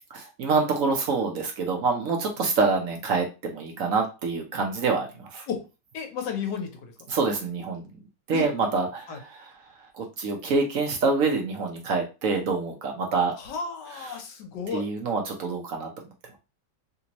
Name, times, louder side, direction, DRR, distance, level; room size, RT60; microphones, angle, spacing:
voice 1, 0.1-5.5 7.1-7.9 8.3-9.5 9.9-13.3 14.0-14.2 14.7-16.1, right 4 dB, 65° right, 2 dB, 0.9 m, -26 dB
voice 2, 5.9-6.9 8.3-8.5 9.1-9.2 13.4-14.8, left 6 dB, 75° left, 4 dB, 1.4 m, -33 dB
3.4 x 2.7 x 2.9 m, 0.30 s
omnidirectional pair, 1.9 m